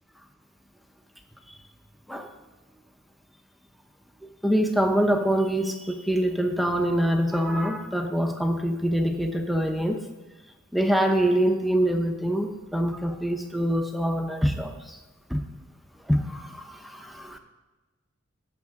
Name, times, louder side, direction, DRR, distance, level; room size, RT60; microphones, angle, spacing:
voice 1, 4.4-10.0 10.7-15.0 15.3-15.4 16.0-17.4, equal, ahead, 4 dB, 0.5 m, -25 dB
16.0 x 5.8 x 3.6 m, 1.2 s
head